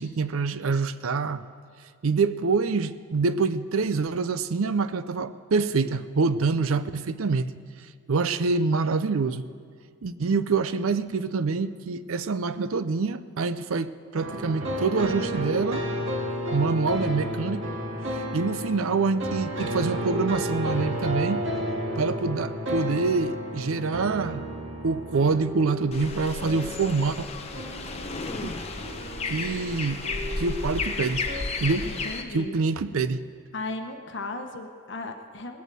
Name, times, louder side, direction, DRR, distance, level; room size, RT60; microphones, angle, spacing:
voice 1, 0.0-1.4 2.0-7.5 8.1-9.5 10.0-15.8 16.5-17.7 18.3-21.4 22.0-24.4 24.8-27.3 28.3-28.5 29.3-30.0 30.4-31.2 31.6-31.9 32.3-33.2, right 4 dB, 80° right, 14 dB, 0.5 m, -26 dB
sound 1, 14.2-31.4, equal, 60° right, 1.9 m, -32 dB
sound 2, 25.9-32.2, left 3 dB, 30° left, 0.8 m, -33 dB
voice 2, 31.8-32.5 33.5-35.6, left 2 dB, 55° left, 5 dB, 1.1 m, -36 dB
19.0 x 8.2 x 7.5 m, 2.1 s
head